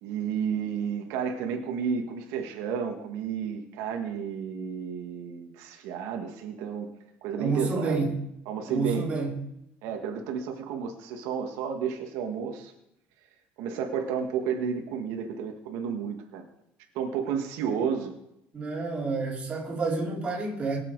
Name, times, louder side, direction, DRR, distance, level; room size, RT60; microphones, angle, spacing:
voice 1, 0.0-6.9 7.2-8.0 8.4-9.1 9.8-12.7 13.6-16.4 16.9-18.1, right 7 dB, 75° right, 3 dB, 1.7 m, -31 dB
voice 2, 7.4-8.1 8.7-9.4 18.5-20.8, right 3 dB, 20° right, -3 dB, 3.4 m, -29 dB
22.5 x 7.5 x 4.7 m, 0.82 s
cardioid pair, 160°, 5 cm